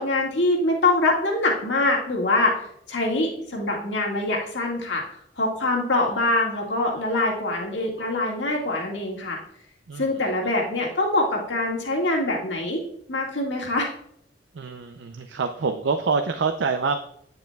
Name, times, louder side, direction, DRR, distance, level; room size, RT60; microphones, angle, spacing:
voice 1, 0.0-2.6 2.9-5.0 5.4-9.4 10.0-12.8 13.1-13.9, left 2 dB, 85° left, -1 dB, 1.9 m, -24 dB
voice 2, 14.5-17.0, right 4 dB, 80° right, 7 dB, 0.5 m, -26 dB
9.0 x 7.8 x 2.3 m, 0.70 s
head